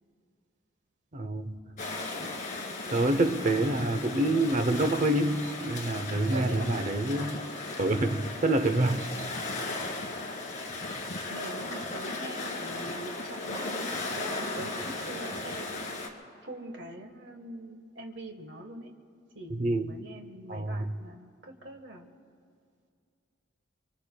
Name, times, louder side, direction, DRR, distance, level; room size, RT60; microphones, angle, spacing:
voice 1, 1.1-1.7 2.2-2.3 2.9-7.4 7.8-9.1 19.5-19.9 20.5-20.9, right 1 dB, 40° right, 0.7 m, -27 dB
sound 1, 1.8-16.1, left 2 dB, 40° left, 1.8 m, -36 dB
voice 2, 6.1-6.7 11.3-16.0 16.4-18.9 19.3-22.1, right 1 dB, 65° right, 1.3 m, -43 dB
25.5 x 24.5 x 2.2 m
head